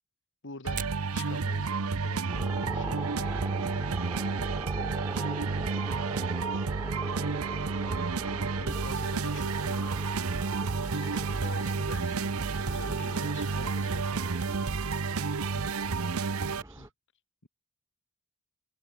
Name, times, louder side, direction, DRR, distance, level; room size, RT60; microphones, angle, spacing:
voice 1, 0.4-3.1 6.9-7.6 8.6-10.0 10.8-14.5 14.9-15.2 15.5-15.7 16.5-16.9 17.4-17.5, left 3 dB, 60° left, 2.8 m, -46 dB
Fire, 0.6-14.5, right 9 dB, 40° right, 6.1 m, -54 dB
sound 1, 0.6-16.6, right 4 dB, 85° right, 0.8 m, -31 dB
sound 2, 2.3-16.9, right 1 dB, 15° right, 2.0 m, -41 dB
voice 2, 3.0-6.7 15.3-16.9, right 4 dB, 60° right, 6.2 m, -54 dB
open air
head